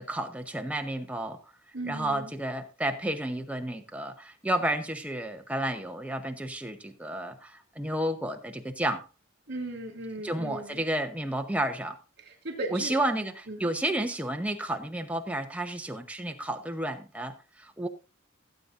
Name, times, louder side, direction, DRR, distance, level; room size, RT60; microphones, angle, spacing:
voice 1, 0.0-1.4 1.8-9.1 10.2-12.0 12.7-17.9, right 1 dB, 5° right, 5 dB, 0.9 m, -31 dB
voice 2, 1.7-2.3 9.5-10.8 12.2-12.9 13.5-13.6, right 2 dB, 55° right, 5 dB, 3.0 m, -37 dB
16.5 x 8.8 x 2.6 m, 0.31 s
head